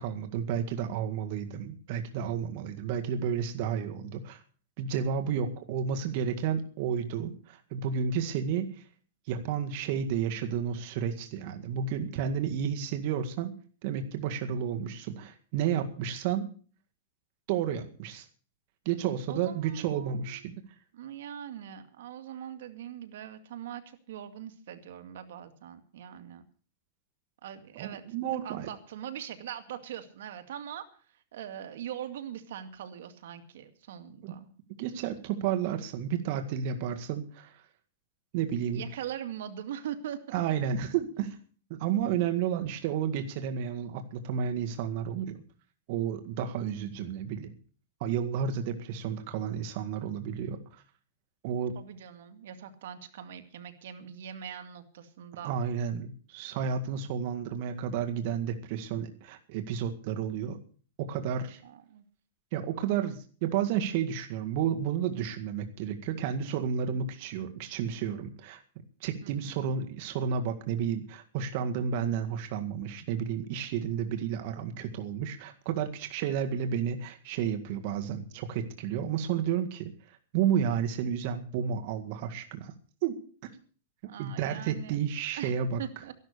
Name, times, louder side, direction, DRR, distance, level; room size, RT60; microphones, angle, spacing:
voice 1, 0.0-4.4 4.8-8.8 9.3-13.5 13.8-16.5 17.5-18.3 18.9-20.5 27.8-28.7 34.2-34.4 34.8-37.6 38.3-38.8 40.3-41.4 41.7-45.4 45.9-47.5 48.0-50.8 51.4-51.8 55.4-60.6 61.0-61.6 62.5-68.6 69.0-82.7 83.0-83.5 84.2-85.8, right 8 dB, 55° right, 6 dB, 1.9 m, -31 dB
voice 2, 19.3-20.4 20.9-26.4 27.4-30.9 31.3-34.5 38.7-40.4 51.7-55.5 61.6-62.0 69.2-69.6 84.0-85.0 85.4-85.5 85.8-86.1, right 10 dB, 75° right, 8 dB, 2.3 m, -42 dB
13.0 x 12.0 x 6.7 m, 0.42 s
supercardioid pair, 150°, 0 cm